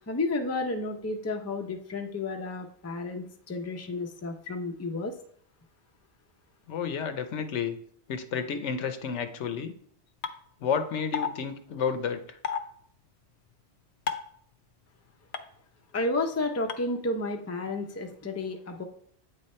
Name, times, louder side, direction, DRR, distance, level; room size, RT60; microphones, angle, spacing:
voice 1, 0.1-5.1 15.9-18.9, left 2 dB, 20° left, 4 dB, 0.4 m, -31 dB
voice 2, 6.7-7.8 8.1-9.7 10.6-12.4, left 6 dB, 85° left, 9 dB, 1.0 m, -31 dB
sound 1, 10.2-10.3 11.1-11.3 12.4-12.6 14.1-14.3 15.3-15.4 16.7-16.8, left 6 dB, 65° left, 0.8 m, -29 dB
8.5 x 3.4 x 4.2 m, 0.62 s
omnidirectional pair, 1.2 m